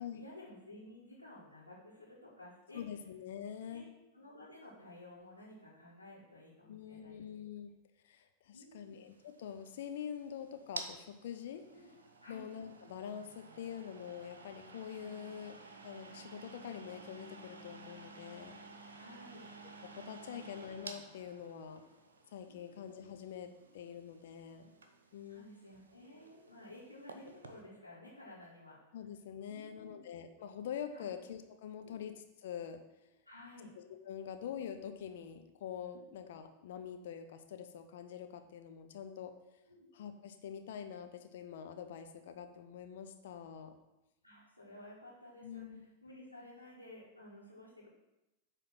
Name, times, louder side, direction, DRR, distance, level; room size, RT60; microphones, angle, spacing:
voice 1, 0.0-2.8 3.7-3.9 4.1-7.3 8.5-9.0 11.7-11.9 12.2-12.4 18.9-19.5 21.6-21.8 22.5-22.8 25.3-28.8 29.4-30.0 30.9-31.1 31.8-32.0 33.3-33.7 36.0-36.1 39.7-39.9 44.2-47.9, left 1 dB, 85° left, -8 dB, 1.8 m, -54 dB
voice 2, 2.7-3.9 6.7-7.7 8.0-11.6 12.3-15.6 15.8-18.9 19.8-21.8 22.3-24.7 25.1-25.5 28.9-32.8 33.7-39.3 39.9-43.7 45.4-45.8, left 8 dB, 55° left, 7 dB, 0.6 m, -45 dB
sound 1, 8.9-27.6, right 3 dB, 70° right, 0.8 m, -53 dB
8.5 x 3.3 x 5.8 m, 0.96 s
figure-of-eight pair, 90°, 0 cm